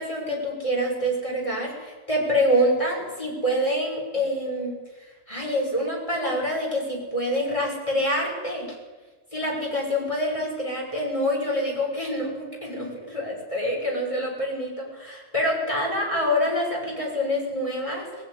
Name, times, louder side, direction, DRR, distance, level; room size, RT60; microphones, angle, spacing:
voice 1, 0.0-4.8 5.3-8.7 9.3-18.1, equal, 30° left, -1 dB, 6.7 m, -26 dB
20.0 x 16.0 x 10.0 m, 1.2 s
omnidirectional pair, 1.1 m